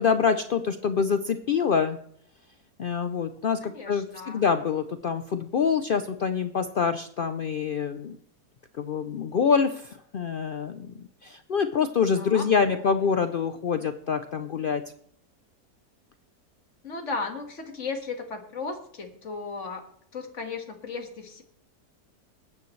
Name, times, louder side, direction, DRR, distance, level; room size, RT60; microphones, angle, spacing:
voice 1, 0.0-2.0 2.8-8.2 8.8-14.8, left 6 dB, 90° left, 9 dB, 0.4 m, -26 dB
voice 2, 3.6-4.4 12.1-12.4 16.8-19.9 20.1-21.4, left 4 dB, 50° left, 4 dB, 2.1 m, -35 dB
20.5 x 9.4 x 3.2 m, 0.65 s
omnidirectional pair, 1.7 m